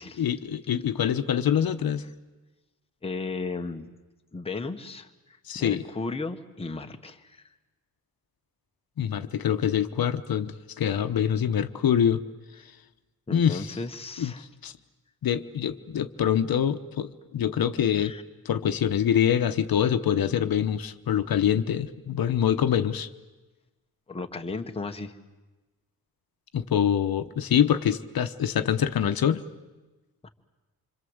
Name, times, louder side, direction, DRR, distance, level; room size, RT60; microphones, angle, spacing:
voice 1, 0.2-2.0 5.5-5.8 9.0-12.2 13.3-13.7 14.2-14.7 15.2-18.2 18.4-23.1 26.5-29.4, left 9 dB, 70° left, 9 dB, 1.1 m, -25 dB
voice 2, 3.0-3.9 4.3-7.5 13.3-14.4 17.9-18.2 24.1-25.2 30.2-30.3, left 3 dB, 15° left, 4 dB, 1.2 m, -35 dB
26.5 x 26.0 x 8.0 m, 1.2 s
wide cardioid pair, 165°, 37 cm